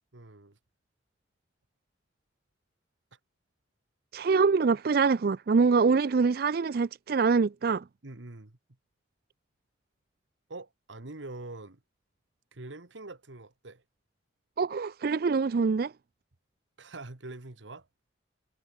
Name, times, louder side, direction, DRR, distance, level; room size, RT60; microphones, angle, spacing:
voice 1, 0.1-0.6 8.0-8.6 10.5-11.8 12.5-13.8 16.8-17.9, right 2 dB, 85° right, 1.7 m, -44 dB
voice 2, 4.1-7.8 14.6-15.9, right 4 dB, 55° right, 0.4 m, -24 dB
head